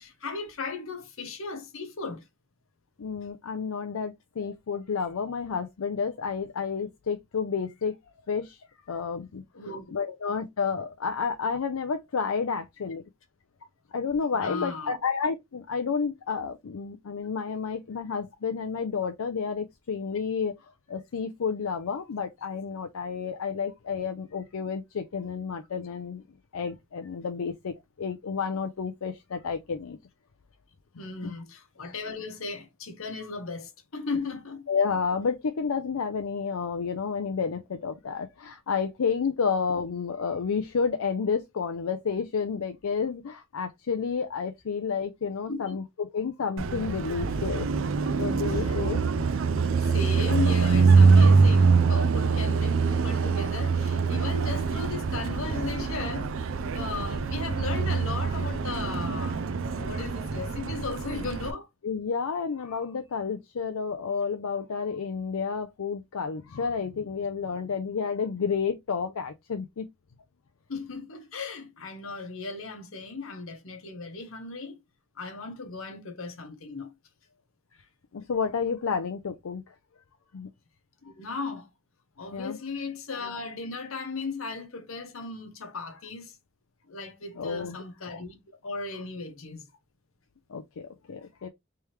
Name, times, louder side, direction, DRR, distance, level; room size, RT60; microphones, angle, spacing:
voice 1, 0.0-2.2 4.4-4.5 9.5-10.2 14.3-15.0 31.0-34.7 45.5-45.8 48.5-48.8 49.8-56.3 56.7-61.7 70.7-74.7 75.2-76.9 81.0-81.7 82.2-86.4 86.9-89.7, left 4 dB, 75° left, 1.0 m, -36 dB
voice 2, 3.0-8.0 8.3-8.6 8.9-9.4 9.9-13.0 13.9-26.2 26.5-30.0 31.2-31.3 34.7-47.7 48.2-49.1 61.8-69.9 78.1-79.7 80.3-80.5 82.3-82.6 87.4-87.8 90.5-91.5, left 5 dB, 90° left, 0.5 m, -30 dB
Car passing by, 46.6-61.5, right 4 dB, 65° right, 0.4 m, -24 dB
3.4 x 3.0 x 3.2 m
head